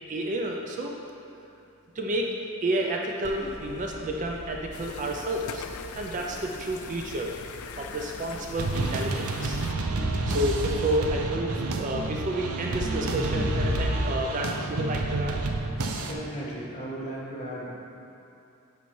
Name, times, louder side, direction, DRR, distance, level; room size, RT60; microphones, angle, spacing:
voice 1, 0.1-0.9 2.0-2.3 2.6-5.6 5.9-7.3 7.8-9.6 10.3-15.4, right 1 dB, 35° right, 1 dB, 0.4 m, -30 dB
Crowd, 3.2-14.0, left 1 dB, 50° left, 1.0 m, -36 dB
sound 1, 4.7-9.7, left 6 dB, 75° left, 0.4 m, -42 dB
sound 2, 8.6-16.1, right 3 dB, 80° right, 0.6 m, -30 dB
voice 2, 16.0-17.7, right 1 dB, 30° left, -7 dB, 1.6 m, -36 dB
9.3 x 5.7 x 3.2 m, 2.8 s
head